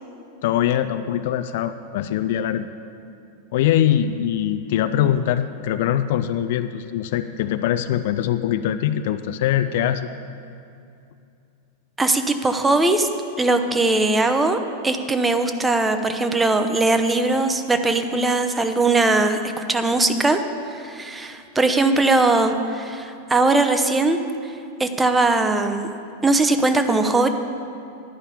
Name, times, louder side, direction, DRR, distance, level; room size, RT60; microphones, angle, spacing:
voice 1, 0.4-2.7 3.5-10.1, left 11 dB, 50° left, 10 dB, 0.4 m, -22 dB
voice 2, 12.0-13.1 13.4-20.4 20.7-24.2 24.8-25.9 26.2-27.3, right 2 dB, 10° right, 7 dB, 0.7 m, -20 dB
11.0 x 5.5 x 8.2 m, 2.6 s
figure-of-eight pair, 90°, 0 cm